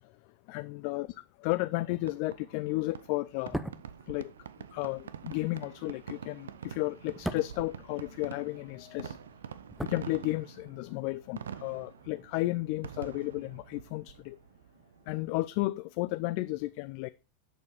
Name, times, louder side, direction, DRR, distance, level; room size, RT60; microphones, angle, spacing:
voice 1, 0.5-1.1 1.4-3.6 4.1-4.3 4.7-9.2 9.8-14.4 15.1-17.1, left 20 dB, 45° left, 0.3 m, -33 dB
Fireworks, 2.0-15.6, right 8 dB, 65° right, 0.6 m, -46 dB
sound 1, 3.3-8.7 8.9-10.8 11.0-11.2, right 1 dB, ahead, 0.7 m, -41 dB
8.2 x 6.9 x 4.6 m
figure-of-eight pair, 90°, 0 cm